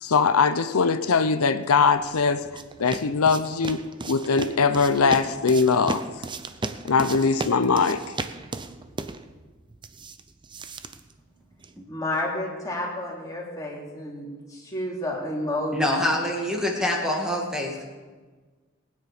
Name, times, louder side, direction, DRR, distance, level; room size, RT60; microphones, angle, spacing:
voice 1, 0.0-2.4 2.8-6.0 6.8-8.0, left 5 dB, 85° left, 11 dB, 0.7 m, -21 dB
sound 1, 1.8-11.8, right 3 dB, 20° right, 0.6 m, -36 dB
voice 2, 11.9-16.0, left 1 dB, 15° left, -3 dB, 3.2 m, -31 dB
voice 3, 15.7-17.8, left 1 dB, 5° right, 0 dB, 2.0 m, -25 dB
21.0 x 9.6 x 5.0 m, 1.4 s
head